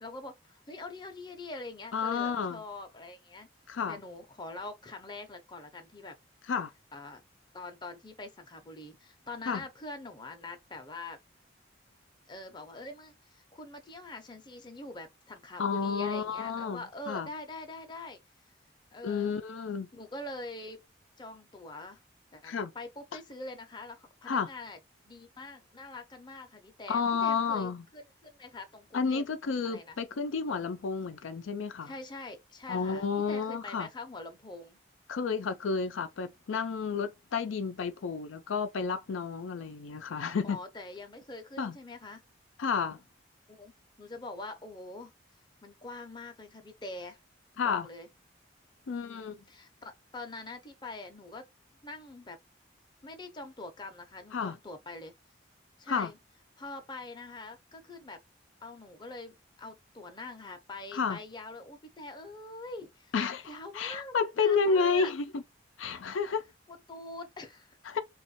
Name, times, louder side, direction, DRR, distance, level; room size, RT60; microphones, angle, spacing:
voice 1, 0.0-3.5 3.9-6.2 6.9-7.2 7.5-11.2 12.3-18.2 18.9-19.3 19.9-20.8 21.2-22.0 22.3-24.8 25.0-29.2 29.6-30.0 31.8-34.8 40.4-42.2 43.5-43.7 44.0-45.1 45.6-47.2 47.5-48.1 49.0-51.5 51.8-52.4 53.0-55.1 55.8-56.2 56.6-58.2 58.6-63.1 63.4-65.1 66.7-67.8, left 2 dB, 25° left, 0.6 m, -44 dB
voice 2, 1.9-2.6 3.7-4.0 6.5-6.7 9.5-9.6 15.6-17.3 19.0-19.9 22.4-22.7 24.3-24.5 26.9-27.8 28.9-31.9 32.7-33.9 35.1-40.6 41.6-41.8 42.6-43.0 47.6-47.9 48.9-49.4 54.3-54.5 55.9-56.1 60.9-61.2 63.1-65.4 65.8-66.4 67.9-68.0, left 5 dB, 85° left, 0.5 m, -31 dB
3.0 x 2.4 x 4.1 m
head